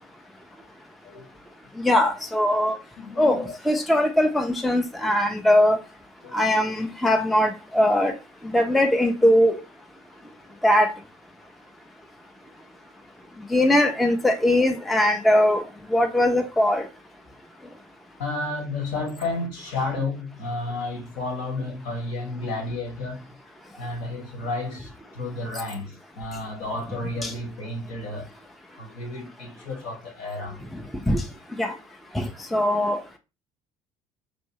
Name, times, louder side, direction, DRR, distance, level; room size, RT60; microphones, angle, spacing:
voice 1, 1.8-2.8 3.2-5.8 6.3-8.1 8.4-9.6 10.6-10.9 13.5-15.6 15.9-16.8 27.2-27.3 31.1-31.2 31.6-31.7 32.1-33.0, left 1 dB, ahead, 0.4 m, -20 dB
voice 2, 3.0-3.5 6.2-6.6 18.2-23.3 23.8-28.3 28.8-30.7, left 2 dB, 70° left, 1.4 m, -32 dB
3.2 x 2.6 x 2.8 m
figure-of-eight pair, 55°, 17 cm